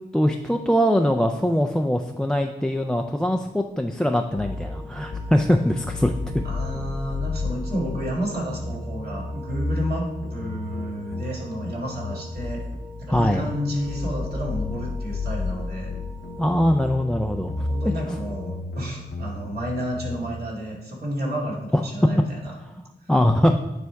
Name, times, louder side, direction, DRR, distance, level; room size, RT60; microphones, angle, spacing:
voice 1, 0.1-6.1 13.1-13.5 16.4-17.5 23.1-23.6, equal, 5° left, 5 dB, 0.4 m, -22 dB
sound 1, 4.4-20.3, left 2 dB, 80° left, 0.8 m, -32 dB
sound 2, 4.4-18.6, equal, 15° right, 2.0 m, -45 dB
voice 2, 6.4-12.6 13.0-16.0 17.5-22.5, equal, 55° right, -4 dB, 2.4 m, -31 dB
9.5 x 3.4 x 4.6 m, 1.1 s
wide cardioid pair, 100°, 19 cm